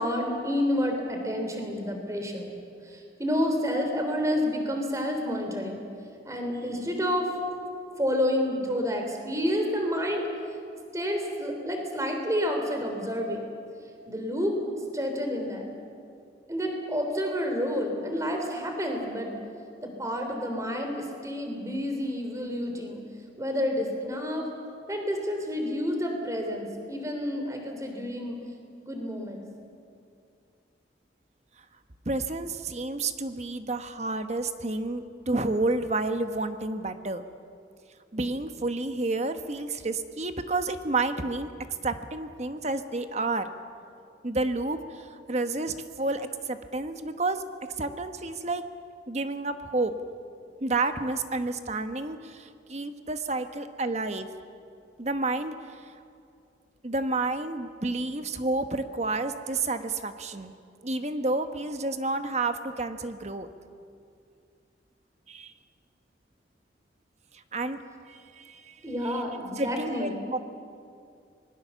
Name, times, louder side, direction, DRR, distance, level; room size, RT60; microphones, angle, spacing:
voice 1, 0.0-2.5 2.8-5.8 6.2-7.4 8.0-10.2 10.9-13.5 14.1-14.6 14.9-15.6 16.5-19.3 19.8-23.0 23.4-24.5 24.9-28.4 28.9-29.4 68.8-70.2, equal, 20° right, 3 dB, 3.4 m, -29 dB
voice 2, 32.1-37.2 38.1-41.5 41.8-43.5 44.2-47.4 47.8-48.6 49.1-49.9 50.6-54.3 55.0-55.5 56.8-60.5 60.8-63.5 65.3-65.5 67.5-67.8 68.1-68.7 69.6-70.4, right 2 dB, 40° right, 9 dB, 1.2 m, -30 dB
25.0 x 20.5 x 7.1 m, 2.4 s
head